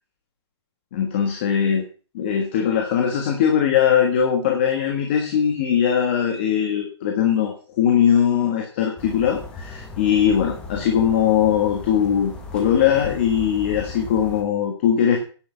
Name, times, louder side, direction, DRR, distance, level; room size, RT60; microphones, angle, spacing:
voice 1, 0.9-1.9 2.1-15.2, left 8 dB, 25° left, 3 dB, 1.5 m, -20 dB
sound 1, 9.0-14.4, left 2 dB, 5° left, 1.0 m, -37 dB
10.5 x 6.7 x 6.7 m, 0.38 s
hypercardioid pair, 180°, 14 cm